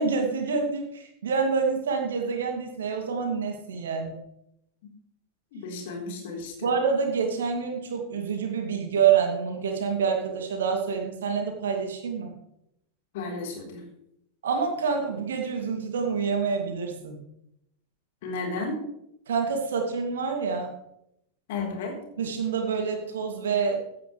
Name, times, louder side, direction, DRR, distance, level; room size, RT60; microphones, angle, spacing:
voice 1, 0.0-4.1 6.6-12.3 14.4-17.2 19.3-20.7 22.2-23.8, right 6 dB, 65° right, 3 dB, 2.5 m, -27 dB
voice 2, 5.5-6.7 13.1-13.8 18.2-18.8 21.5-22.0, left 3 dB, 50° left, 0 dB, 3.8 m, -33 dB
16.0 x 10.0 x 3.3 m, 0.79 s
figure-of-eight pair, 90°, 0 cm